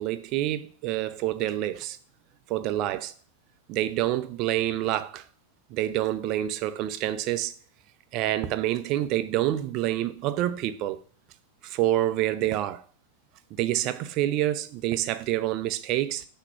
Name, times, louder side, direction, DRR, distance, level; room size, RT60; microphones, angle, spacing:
voice 1, 0.0-2.0 2.5-3.1 3.7-5.2 5.7-7.5 8.1-11.0 11.6-12.8 13.6-16.3, right 14 dB, 40° right, 0.5 m, -27 dB
5.9 x 3.0 x 5.6 m
figure-of-eight pair, 90°, 0 cm